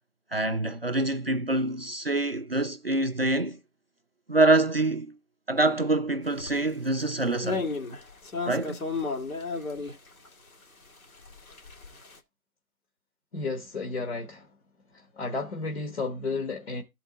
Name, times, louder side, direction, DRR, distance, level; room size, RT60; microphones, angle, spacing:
voice 1, 0.3-3.6 4.3-5.1 5.5-7.7 8.5-8.8, right 2 dB, 45° right, 0.4 m, -25 dB
sound 1, 6.4-6.6 6.9-7.1 7.4-10.3 11.0-12.2, left 4 dB, 75° left, 2.0 m, -33 dB
voice 2, 13.3-14.5 14.9-16.8, left 3 dB, 45° left, 1.2 m, -32 dB
13.0 x 4.5 x 3.8 m
figure-of-eight pair, 160°, 43 cm